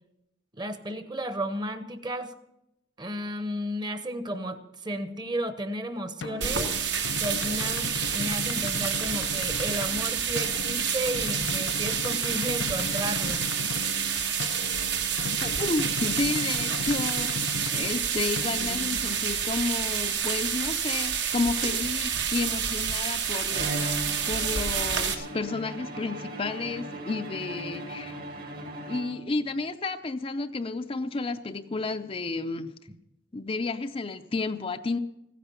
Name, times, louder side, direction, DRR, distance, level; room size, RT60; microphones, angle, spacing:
voice 1, 0.5-2.3 3.0-6.7 7.2-13.5, right 1 dB, 25° right, 10 dB, 1.0 m, -33 dB
sound 1, 6.2-19.8, left 4 dB, 80° left, 0.5 m, -37 dB
sound 2, 6.4-25.1, right 7 dB, 70° right, 1.5 m, -28 dB
voice 2, 15.4-17.3 17.7-24.0 24.3-28.2 28.9-32.7 33.3-35.0, left 3 dB, 30° left, 7 dB, 0.5 m, -31 dB
Bowed string instrument, 23.5-29.5, right 1 dB, 55° right, 1.9 m, -37 dB
15.0 x 10.0 x 6.9 m, 0.85 s
head